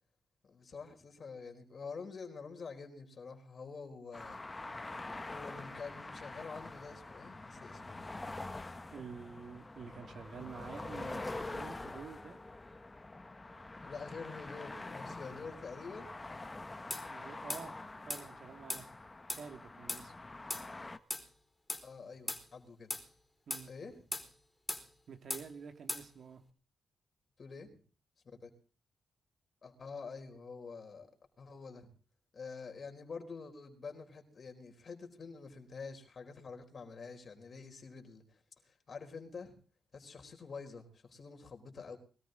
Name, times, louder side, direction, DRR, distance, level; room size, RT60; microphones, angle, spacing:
voice 1, 0.4-4.4 5.3-8.2 13.8-16.1 21.8-22.9 23.7-24.0 27.4-27.8 28.2-28.5 29.6-31.1 31.4-31.9 32.3-38.4 38.7-39.5 39.9-42.0, left 4 dB, 50° left, 5 dB, 4.1 m, -47 dB
sound 1, 4.1-21.0, left 2 dB, 25° left, 1.3 m, -45 dB
voice 2, 8.9-12.4 17.1-17.7 18.1-18.9 19.3-20.1 23.5-23.7 25.1-26.4, right 6 dB, 65° right, 7 dB, 2.3 m, -48 dB
sound 2, 16.9-17.1 17.5-17.7 18.1-18.2 18.7-18.9 19.3-19.5 19.9-20.0 20.5-20.7 21.1-21.3 21.7-21.8 22.3-22.4 22.9-23.1 23.5-23.7 24.1-24.3 24.7-24.9 25.3-25.5 25.9-26.1, left 1 dB, 10° left, 4.0 m, -38 dB
22.0 x 13.5 x 3.9 m, 0.40 s
cardioid pair, 70°, 0 cm